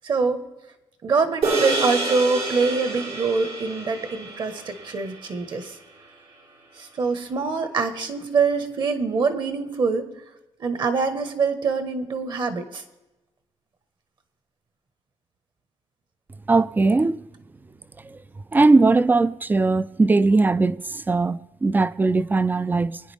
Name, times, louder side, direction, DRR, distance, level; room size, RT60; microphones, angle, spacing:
voice 1, 0.0-0.4 1.0-5.7 6.8-10.1 10.6-12.8, right 4 dB, 50° right, 1.5 m, -24 dB
sound 1, 1.4-6.0, right 3 dB, 85° right, 5.7 m, -28 dB
voice 2, 16.5-17.2 18.0-18.2 18.5-23.0, right 3 dB, 20° right, 0.4 m, -19 dB
23.5 x 10.0 x 3.6 m
wide cardioid pair, 140°, 10 cm